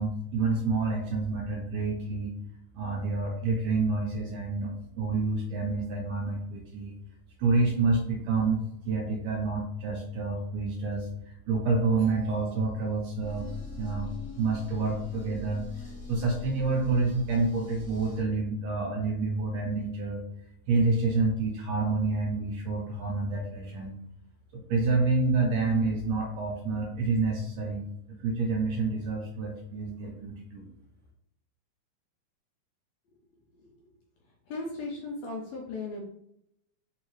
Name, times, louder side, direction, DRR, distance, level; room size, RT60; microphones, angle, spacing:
voice 1, 0.0-2.4 2.7-6.9 7.4-13.5 13.8-14.1 14.4-15.6 16.1-20.2 20.7-23.9 24.5-27.9 28.2-30.7, right 3 dB, 80° right, -1 dB, 1.6 m, -28 dB
sound 1, 13.2-18.2, left 2 dB, 30° left, 1.3 m, -42 dB
voice 2, 34.5-36.0, left 3 dB, 75° left, 0 dB, 1.6 m, -37 dB
4.7 x 2.7 x 3.0 m, 0.75 s
omnidirectional pair, 3.6 m